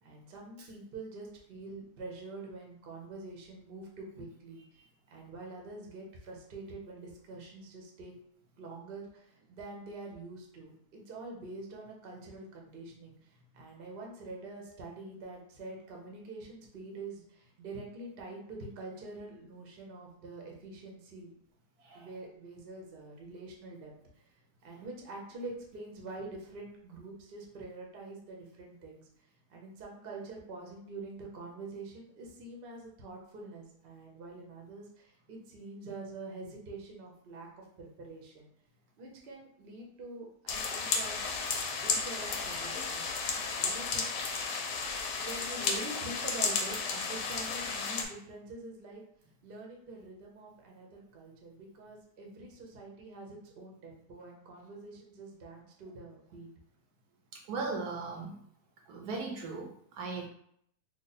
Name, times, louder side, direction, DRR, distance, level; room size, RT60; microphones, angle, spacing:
voice 1, 0.0-4.6 5.1-8.1 8.6-21.3 21.9-23.9 24.6-29.1 29.5-38.5 39.0-41.2 41.8-44.6 45.1-49.0 49.4-56.5, right 2 dB, 45° right, -1 dB, 0.7 m, -46 dB
sound 1, 40.5-48.0, left 5 dB, 70° left, 1.0 m, -33 dB
voice 2, 57.3-58.3 58.9-60.3, right 4 dB, 75° right, 0 dB, 1.1 m, -38 dB
3.2 x 2.3 x 4.0 m, 0.68 s
omnidirectional pair, 1.8 m